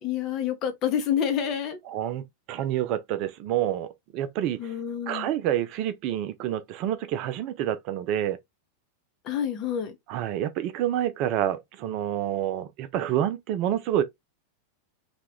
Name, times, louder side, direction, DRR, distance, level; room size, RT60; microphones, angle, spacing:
voice 1, 0.0-1.8 4.6-5.3 9.2-10.0, left 9 dB, 35° left, 0.7 m, -28 dB
voice 2, 1.9-2.2 2.5-4.6 5.1-8.4 10.1-14.0, right 11 dB, 40° right, 0.4 m, -28 dB
2.9 x 2.3 x 2.8 m
figure-of-eight pair, 90°, 0 cm